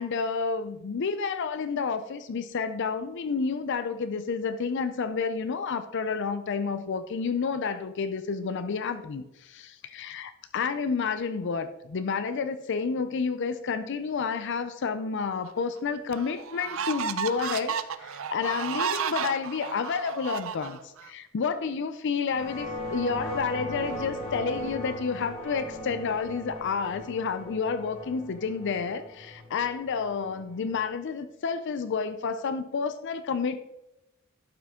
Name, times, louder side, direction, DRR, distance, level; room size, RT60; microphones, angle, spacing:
voice 1, 0.0-33.6, left 5 dB, 60° left, 11 dB, 0.5 m, -30 dB
sound 1, 15.5-15.6 16.1-21.1, right 7 dB, 70° right, 0.5 m, -32 dB
sound 2, 22.2-30.9, equal, 80° left, 3.4 m, -38 dB
11.5 x 6.0 x 3.6 m, 0.91 s
head